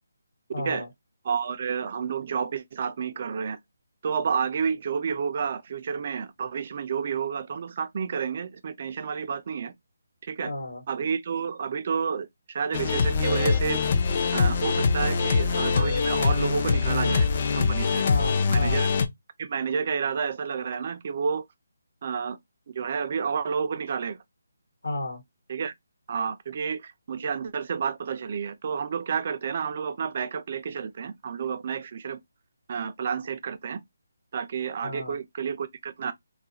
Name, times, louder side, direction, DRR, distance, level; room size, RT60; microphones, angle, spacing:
voice 1, 0.5-0.9 10.4-10.8 18.0-18.8 24.8-25.2 34.8-35.2, left 2 dB, 90° left, 1.3 m, -32 dB
voice 2, 1.2-3.6 4.0-9.7 10.2-10.5 10.9-13.8 14.3-18.0 18.5-18.9 19.4-21.5 22.0-22.4 22.7-24.2 25.5-25.7 26.1-32.2 32.7-33.8 34.3-36.1, right 6 dB, 40° right, 0.3 m, -30 dB
sound 1, 12.7-19.1, left 5 dB, 35° left, 0.4 m, -23 dB
2.3 x 2.1 x 2.7 m
hypercardioid pair, 165°, 0 cm